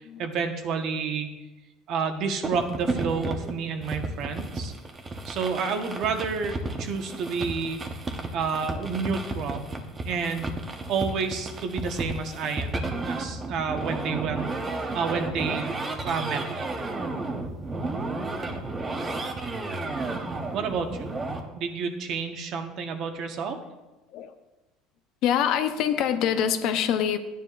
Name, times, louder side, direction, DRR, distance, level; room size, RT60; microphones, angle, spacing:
voice 1, 0.0-1.4 1.9-4.7 5.2-7.8 8.3-9.7 10.0-15.7 16.0-16.7 20.5-21.1 21.6-23.6, right 5 dB, 50° right, 5 dB, 1.2 m, -30 dB
sound 1, 2.4-21.4, right 2 dB, 20° right, 1.0 m, -33 dB
voice 2, 25.2-27.2, left 9 dB, 60° left, 8 dB, 0.8 m, -24 dB
13.5 x 9.4 x 2.5 m, 1.1 s
cardioid pair, 145°, 0 cm